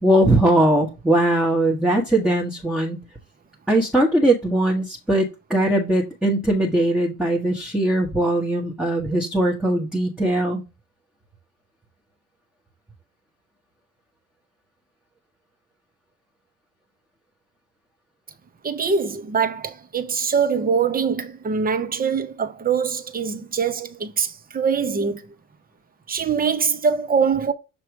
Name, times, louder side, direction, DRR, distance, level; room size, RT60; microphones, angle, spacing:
voice 1, 0.0-3.0 3.7-10.6, right 1 dB, ahead, 1.2 m, -20 dB
voice 2, 18.6-25.3 26.1-27.5, right 6 dB, 20° right, 0.9 m, -23 dB
6.8 x 3.0 x 4.8 m
figure-of-eight pair, 70°, 45 cm